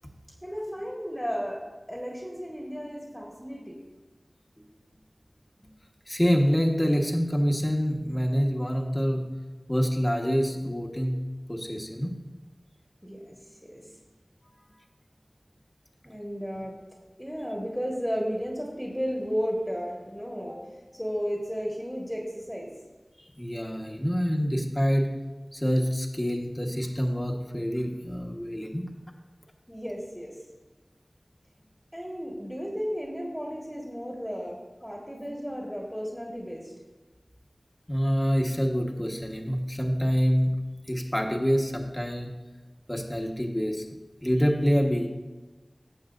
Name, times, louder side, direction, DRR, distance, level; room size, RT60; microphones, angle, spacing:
voice 1, 0.4-3.8 4.6-4.7 5.6-5.7 13.0-14.0 16.0-16.8 17.2-22.7 29.7-30.4 31.9-36.7, equal, ahead, -2 dB, 1.6 m, -34 dB
voice 2, 6.1-9.2 9.7-11.2 11.5-12.1 23.2-25.1 25.5-28.8 37.9-40.5 40.9-42.3 42.9-43.8 44.2-45.1, equal, 20° left, 1 dB, 1.2 m, -26 dB
15.5 x 7.1 x 2.6 m, 1.2 s
wide cardioid pair, 55°, 0 cm